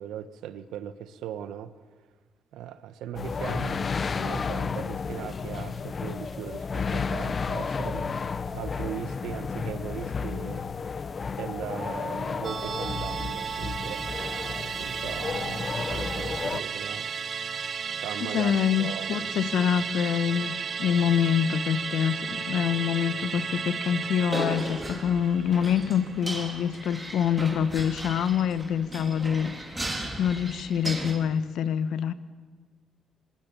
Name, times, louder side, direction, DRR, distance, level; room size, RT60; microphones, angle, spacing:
voice 1, 0.0-1.8 2.5-8.2 8.5-10.6 11.4-14.1 14.8-17.6 18.0-18.5 18.8-19.3, right 10 dB, 85° right, 1.2 m, -39 dB
sound 1, 3.2-16.6, left 5 dB, 40° left, 0.8 m, -32 dB
Musical instrument, 12.4-27.1 27.4-27.5, right 6 dB, 45° right, 0.6 m, -34 dB
voice 2, 18.2-29.9 30.2-32.1, left 8 dB, 75° left, 1.1 m, -26 dB
sound 2, 24.2-31.1, right 1 dB, 15° right, 4.2 m, -36 dB
25.5 x 22.0 x 7.1 m
cardioid pair, 90°, 0 cm